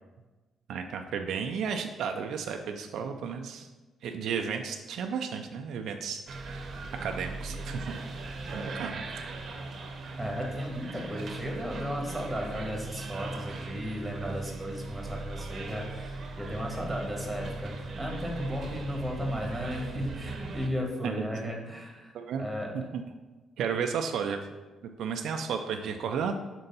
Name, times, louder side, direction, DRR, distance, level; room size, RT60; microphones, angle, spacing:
voice 1, 0.7-3.7 4.0-6.7 7.0-7.9 8.5-9.0 21.0-21.4 22.1-22.5 22.7-23.0 23.6-24.4 25.0-26.3, right 6 dB, 75° right, 5 dB, 0.4 m, -33 dB
sound 1, 6.3-20.7, right 2 dB, 55° right, 0.8 m, -38 dB
voice 2, 10.2-22.1 22.4-22.7, equal, 5° right, 0 dB, 1.5 m, -35 dB
4.4 x 4.0 x 5.4 m, 1.2 s
cardioid pair, 90°, 0 cm